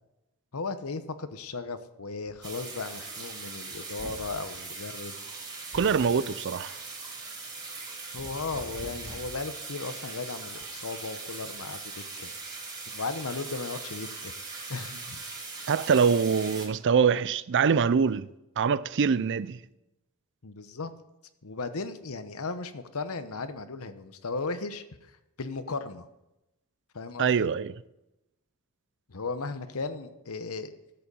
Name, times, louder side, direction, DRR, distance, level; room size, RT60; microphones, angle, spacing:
voice 1, 0.5-5.2 8.1-12.3 12.9-14.3 14.7-15.2 20.4-20.9 21.4-24.8 25.4-26.1 26.9-27.5 29.1-30.7, left 3 dB, 70° left, 1.0 m, -36 dB
sound 1, 2.3-2.5 4.0-4.4 5.7-6.1 8.2-9.4, equal, 10° left, 1.7 m, -45 dB
sound 2, 2.4-16.7, right 4 dB, 20° right, 3.0 m, -40 dB
voice 2, 5.7-6.8 15.7-18.3 18.6-19.6 27.2-27.7, right 6 dB, 55° right, 0.5 m, -24 dB
13.5 x 7.8 x 7.0 m
head